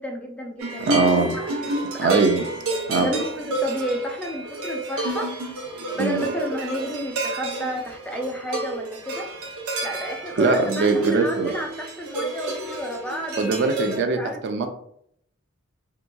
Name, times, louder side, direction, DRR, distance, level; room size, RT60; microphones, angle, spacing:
voice 1, 0.0-1.5 1.8-2.3 3.0-5.3 6.0-9.3 9.8-14.7, equal, 5° left, 2 dB, 0.4 m, -31 dB
sound 1, 0.6-14.0, right 2 dB, 90° right, 0.7 m, -30 dB
voice 2, 0.8-1.4 2.0-2.5 2.9-3.1 6.0-6.2 10.4-11.5 13.4-14.7, right 4 dB, 55° right, 6 dB, 0.4 m, -21 dB
3.4 x 2.8 x 2.2 m, 0.70 s
head